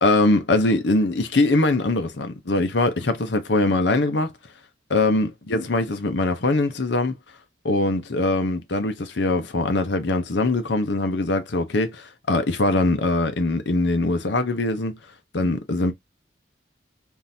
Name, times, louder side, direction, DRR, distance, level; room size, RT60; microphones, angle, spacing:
voice 1, 0.0-4.3 4.9-7.1 7.6-15.0 15.3-15.9, left 2 dB, 70° left, 0.8 m, -22 dB
3.7 x 2.6 x 2.7 m
head